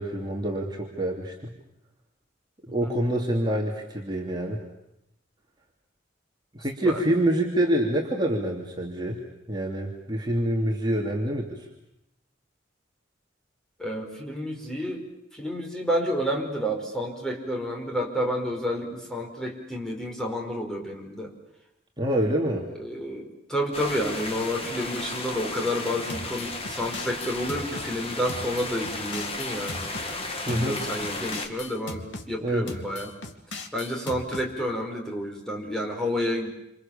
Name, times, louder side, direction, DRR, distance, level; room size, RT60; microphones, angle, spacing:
voice 1, 0.0-1.5 2.7-4.6 6.5-9.2 9.5-11.6 22.0-22.7 30.5-30.8 32.4-32.7, right 1 dB, 25° right, -1 dB, 2.9 m, -26 dB
voice 2, 13.8-15.1 15.3-21.3 22.8-33.1 33.7-36.5, equal, 5° left, -1 dB, 4.9 m, -30 dB
sound 1, 23.7-31.5, left 2 dB, 30° left, 2.8 m, -34 dB
sound 2, 26.1-27.9 28.3-30.1 30.5-32.3 32.7-34.5, left 2 dB, 75° left, 2.6 m, -38 dB
29.0 x 27.5 x 7.2 m, 0.86 s
head